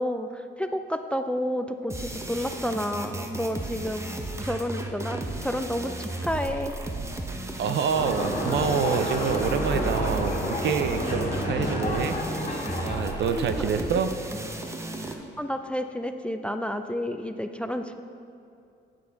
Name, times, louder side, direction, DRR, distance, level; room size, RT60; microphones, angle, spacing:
voice 1, 0.0-4.1 4.4-6.8 13.3-14.0 15.0-18.0, equal, 5° left, 8 dB, 0.4 m, -31 dB
sound 1, 1.9-15.1, right 2 dB, 15° right, 0.9 m, -34 dB
voice 2, 7.6-12.5 12.8-14.1, right 7 dB, 65° right, 9 dB, 0.6 m, -27 dB
sound 2, 7.9-13.8, left 1 dB, 35° left, 2.0 m, -30 dB
8.9 x 6.8 x 5.1 m, 2.5 s
cardioid pair, 90°, 20 cm